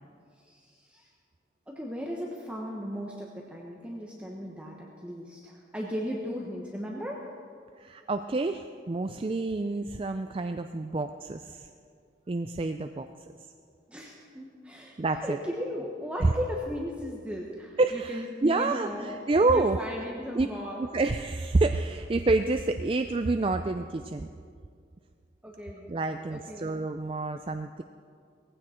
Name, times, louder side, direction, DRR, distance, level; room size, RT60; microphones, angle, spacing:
voice 1, 0.4-1.1 1.7-7.3 13.9-14.9 15.2-19.2 19.5-20.8 25.4-25.9 26.2-26.8, equal, 5° right, -2 dB, 1.1 m, -37 dB
voice 2, 7.8-11.7 12.3-13.1 15.0-15.4 16.2-16.3 17.8-19.8 20.3-20.5 20.8-24.3 25.9-27.8, right 3 dB, 30° right, 8 dB, 0.4 m, -28 dB
18.5 x 15.5 x 4.4 m, 2.2 s
head